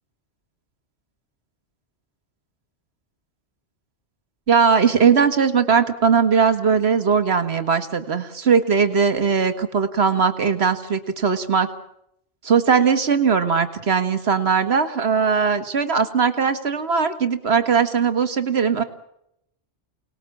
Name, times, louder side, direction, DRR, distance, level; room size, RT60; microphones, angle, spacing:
voice 1, 4.5-11.7 12.4-18.8, right 6 dB, 60° right, 9 dB, 2.1 m, -19 dB
28.5 x 20.0 x 8.6 m, 0.78 s
omnidirectional pair, 1.2 m